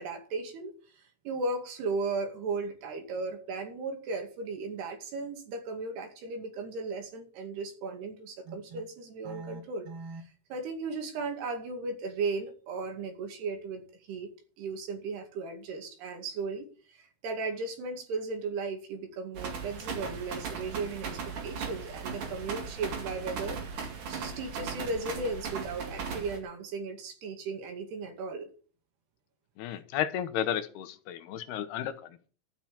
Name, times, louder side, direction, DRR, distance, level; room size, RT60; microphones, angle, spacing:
voice 1, 0.0-14.3 14.6-21.1 21.4-23.6 24.1-28.5, right 3 dB, 75° right, 5 dB, 4.3 m, -36 dB
sound 1, 19.3-26.4, right 5 dB, 55° right, 3.7 m, -37 dB
voice 2, 29.6-32.2, left 10 dB, 75° left, 11 dB, 2.9 m, -33 dB
13.0 x 6.1 x 8.7 m, 0.41 s
omnidirectional pair, 4.7 m